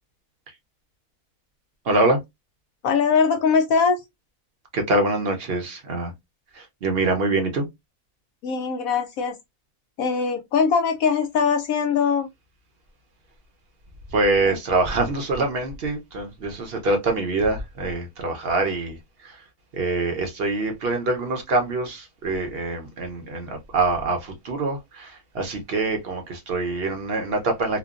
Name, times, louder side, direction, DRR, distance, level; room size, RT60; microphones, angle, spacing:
voice 1, 1.8-2.2 4.7-6.1 6.5-7.7 14.1-19.4 19.7-27.8, right 2 dB, 50° right, 0.8 m, -25 dB
voice 2, 2.8-4.0 8.4-9.4 10.0-12.3 14.4-14.6, left 5 dB, 70° left, 1.0 m, -21 dB
3.1 x 2.2 x 2.4 m
omnidirectional pair, 1.7 m